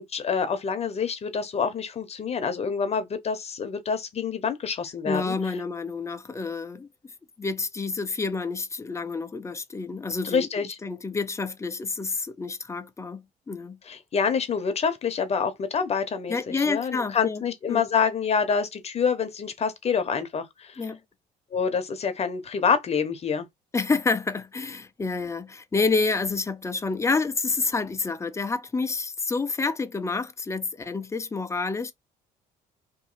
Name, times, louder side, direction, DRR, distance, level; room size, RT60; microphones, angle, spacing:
voice 1, 0.0-5.3 10.2-10.7 13.8-20.8 21.5-23.5, left 6 dB, 40° left, 0.8 m, -27 dB
voice 2, 5.1-6.9 7.4-10.5 10.8-13.8 16.3-17.4 17.7-17.8 20.8-21.0 23.7-31.9, left 4 dB, 15° left, 0.4 m, -28 dB
3.0 x 2.6 x 3.9 m
cardioid pair, 110°, 17 cm